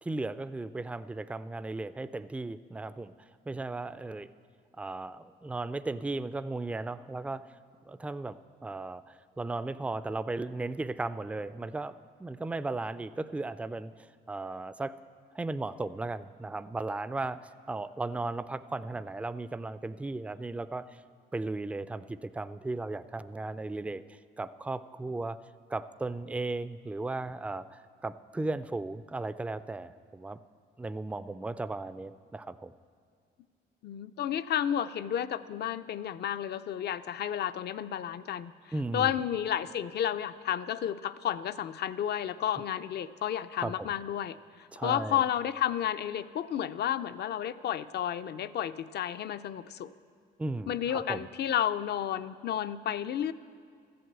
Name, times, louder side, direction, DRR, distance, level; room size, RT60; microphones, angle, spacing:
voice 1, 0.0-3.1 3.5-4.3 4.8-7.4 7.9-14.9 15.3-21.0 21.3-25.4 25.7-30.4 30.8-32.7 38.7-39.1 43.6-43.9 44.7-45.2 50.4-51.3, right 2 dB, 5° right, 14 dB, 0.3 m, -36 dB
voice 2, 33.8-49.9 50.7-53.3, left 10 dB, 55° left, 13 dB, 0.5 m, -32 dB
13.5 x 7.8 x 8.0 m, 2.1 s
cardioid pair, 90°, 20 cm